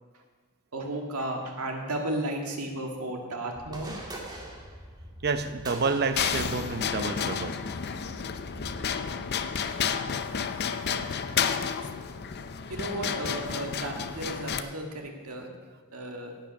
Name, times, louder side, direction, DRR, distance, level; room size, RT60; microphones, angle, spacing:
voice 1, 0.7-3.9 12.7-15.5 15.9-16.3, right 1 dB, 85° right, 2 dB, 1.9 m, -34 dB
sound 1, 3.6-8.9, right 1 dB, 20° right, 1.8 m, -44 dB
voice 2, 5.2-7.6 10.9-11.1, right 4 dB, 50° right, 9 dB, 0.8 m, -29 dB
sound 2, 6.2-14.6, left 7 dB, 50° left, 0.6 m, -31 dB
17.0 x 5.7 x 5.9 m, 1.4 s
head